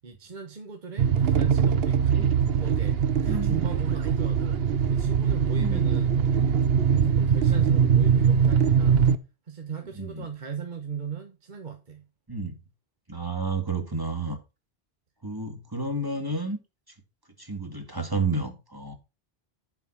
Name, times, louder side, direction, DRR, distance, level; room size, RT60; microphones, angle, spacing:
voice 1, 0.0-2.3 2.6-6.5 7.0-9.1 9.5-12.1, right 6 dB, 50° right, 1.2 m, -38 dB
sound 1, 1.0-9.2, right 7 dB, 70° right, 1.0 m, -22 dB
voice 2, 3.3-3.7 5.5-6.0 10.0-10.2 12.3-12.6 13.1-14.4 15.2-16.6 17.4-18.9, right 3 dB, 20° right, 2.1 m, -31 dB
11.0 x 4.7 x 5.8 m
omnidirectional pair, 1.1 m